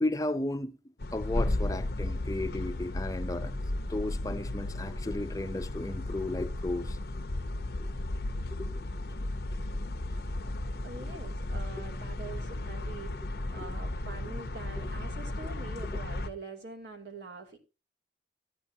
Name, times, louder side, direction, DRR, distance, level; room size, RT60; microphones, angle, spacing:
voice 1, 0.0-0.8 1.1-3.6 3.9-7.2 7.8-7.9 8.5-8.9 11.8-11.9 13.5-13.7, left 2 dB, 20° left, 0.5 m, -34 dB
sound 1, 1.0-16.3, left 1 dB, 60° left, 0.7 m, -34 dB
voice 2, 10.8-17.6, right 4 dB, 75° right, 2.5 m, -44 dB
13.5 x 9.5 x 2.8 m
head